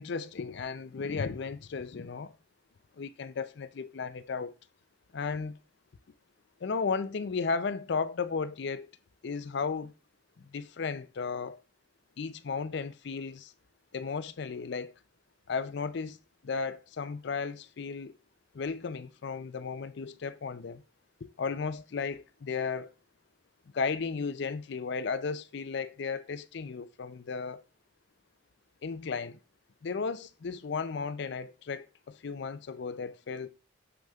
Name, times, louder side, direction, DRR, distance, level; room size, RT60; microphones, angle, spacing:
voice 1, 0.0-2.3 3.0-4.5 5.1-5.6 6.6-8.9 9.2-9.9 10.4-11.6 12.2-13.5 13.9-14.9 15.5-16.2 16.4-18.1 18.5-20.8 21.4-22.9 23.7-27.6 28.8-29.4 29.8-33.5, left 5 dB, 60° left, 0.5 m, -34 dB
7.0 x 6.2 x 2.4 m
head